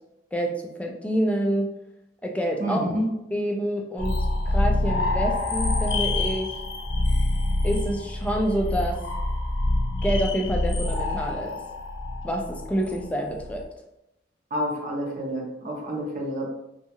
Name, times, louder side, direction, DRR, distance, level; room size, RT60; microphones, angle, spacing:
voice 1, 0.3-1.7 2.2-2.8 3.3-6.6 7.6-9.0 10.0-11.6 12.2-13.6, equal, 5° left, 1 dB, 0.3 m, -27 dB
voice 2, 2.6-3.0 14.5-16.5, equal, 45° right, -2 dB, 0.7 m, -29 dB
sound 1, 4.0-13.6, left 2 dB, 75° left, 0.7 m, -26 dB
2.7 x 2.3 x 2.8 m, 0.85 s
head